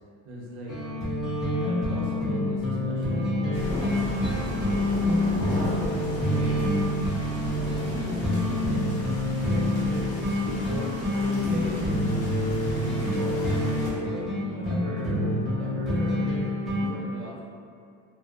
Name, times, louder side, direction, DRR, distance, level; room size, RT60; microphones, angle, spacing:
voice 1, 0.2-0.7 1.6-4.5 5.3-6.7 7.8-8.9 9.4-9.6 9.9-10.9 11.2-11.7 12.7-16.4 16.7-17.4, equal, 55° right, -5 dB, 0.7 m, -39 dB
sound 1, 0.7-16.9, left 1 dB, ahead, 0.3 m, -27 dB
sound 2, 3.5-13.9, left 1 dB, 70° left, 1.0 m, -35 dB
2.6 x 2.0 x 2.3 m, 2.4 s
supercardioid pair, 120°, 32 cm